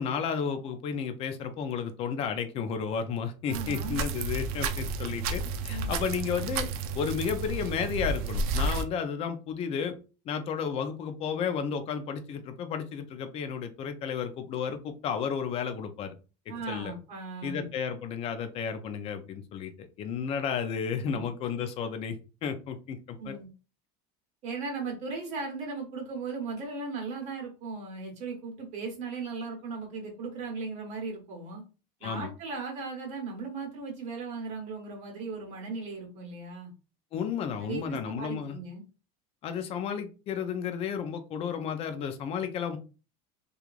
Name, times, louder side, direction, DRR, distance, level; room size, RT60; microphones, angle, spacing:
voice 1, 0.0-9.9 10.3-16.1 16.7-16.9 17.4-23.4 32.0-32.3 37.1-38.6 39.4-42.8, left 7 dB, 35° left, 8 dB, 0.4 m, -32 dB
voice 2, 3.5-4.0 5.7-6.0 16.5-17.7 21.1-21.2 23.2-23.5 24.4-31.6 32.0-36.7 37.6-38.8, right 4 dB, 40° right, 0 dB, 1.1 m, -37 dB
sound 1, 3.5-8.8, right 3 dB, 90° right, 0.5 m, -31 dB
3.1 x 2.4 x 2.4 m, 0.33 s
cardioid pair, 150°, 18 cm